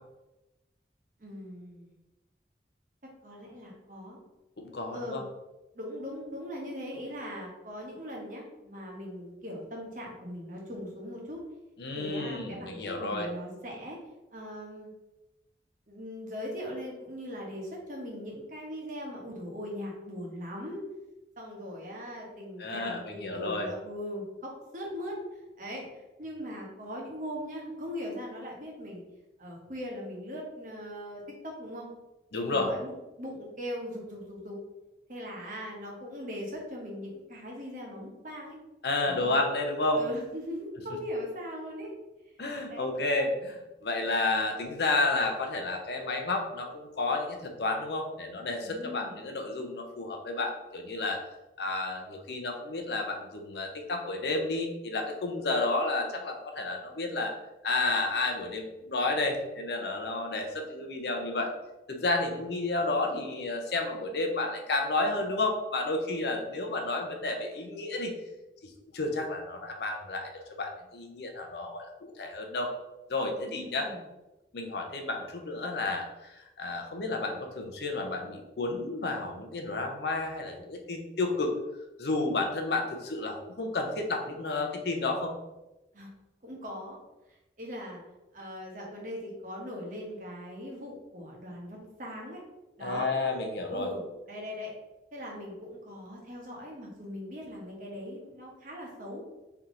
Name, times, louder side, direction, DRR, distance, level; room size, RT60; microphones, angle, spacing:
voice 1, 1.2-1.9 3.2-4.2 4.9-5.2 5.7-11.4 11.9-14.0 14.3-14.9 15.9-20.8 21.4-29.0 29.4-31.9 32.4-34.6 35.1-38.6 39.0-39.4 40.0-41.9 42.7-42.9 48.6-49.1 73.3-74.0 85.9-86.1 86.4-87.0 87.3-88.0 88.3-92.4 92.8-93.1 93.7-94.0 94.3-94.7 95.1-99.2, equal, 45° right, -2 dB, 1.0 m, -40 dB
voice 2, 4.6-5.2 11.8-13.3 22.6-23.7 32.3-32.7 38.8-40.0 42.4-51.2 51.6-57.3 57.6-61.5 61.9-68.1 68.9-70.3 70.6-72.7 73.1-73.9 74.5-81.5 82.0-85.3 92.8-93.9, left 2 dB, 65° left, 3 dB, 0.6 m, -31 dB
3.4 x 2.9 x 3.7 m, 0.99 s
head